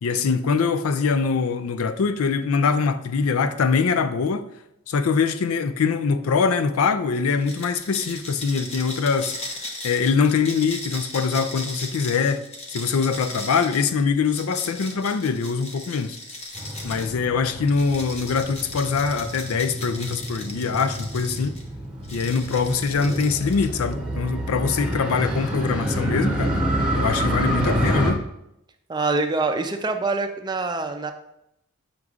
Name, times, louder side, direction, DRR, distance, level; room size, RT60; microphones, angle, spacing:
voice 1, 0.0-4.5 4.9-9.3 9.8-12.4 12.7-16.2 16.8-21.6 22.1-26.6 26.9-28.2, left 5 dB, 75° left, 0.4 m, -23 dB
sound 1, 7.4-17.1 17.7-21.6 22.0-23.9, left 2 dB, 30° left, 0.9 m, -37 dB
Motorcycle, 16.5-28.1, equal, 5° right, 1.0 m, -28 dB
voice 2, 28.9-31.1, right 3 dB, 20° right, 0.4 m, -25 dB
7.8 x 5.9 x 2.4 m
head